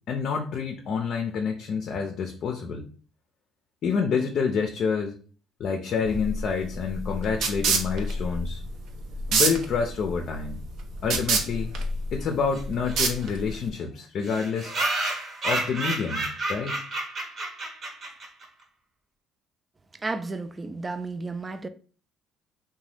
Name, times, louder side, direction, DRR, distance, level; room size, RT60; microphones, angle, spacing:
voice 1, 0.1-2.9 3.8-5.2 5.6-8.6 9.3-10.6 11.0-11.7 12.1-14.7 15.4-16.8, left 6 dB, 60° left, 0.4 m, -28 dB
sound 1, 6.1-13.7, right 3 dB, 70° right, 0.6 m, -28 dB
sound 2, 12.5-12.6 12.9-13.0 13.2-13.3 13.5-13.6 14.2-18.5, right 2 dB, 45° right, 0.9 m, -30 dB
voice 2, 20.0-21.7, right 3 dB, 25° right, 0.4 m, -32 dB
2.8 x 2.2 x 3.2 m
supercardioid pair, 75°, 0 cm